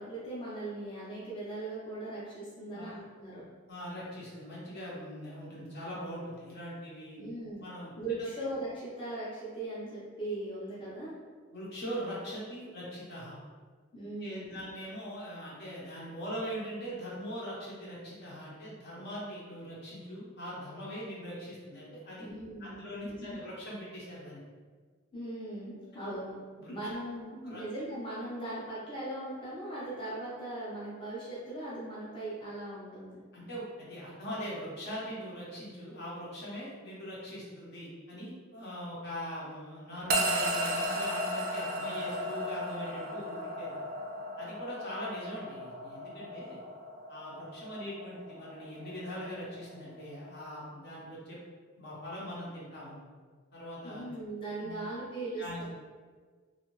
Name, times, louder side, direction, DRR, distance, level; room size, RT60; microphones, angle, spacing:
voice 1, 0.0-3.4 7.2-7.6 8.0-11.2 13.9-14.6 22.2-23.4 25.1-26.3 26.7-33.2 53.8-55.6, right 1 dB, 25° left, -9 dB, 0.7 m, -39 dB
voice 2, 3.7-7.2 7.6-7.9 8.2-8.3 11.5-13.4 14.2-22.3 22.6-24.4 25.9-26.2 26.6-26.7 27.4-27.6 33.3-43.8 44.4-46.6 47.1-51.4 51.8-53.0 53.5-54.1 54.6-54.7 55.4-55.6, equal, 55° left, -6 dB, 0.9 m, -41 dB
sound 1, 40.1-50.4, right 1 dB, 45° right, 0.4 m, -35 dB
2.6 x 2.4 x 3.0 m, 1.5 s
head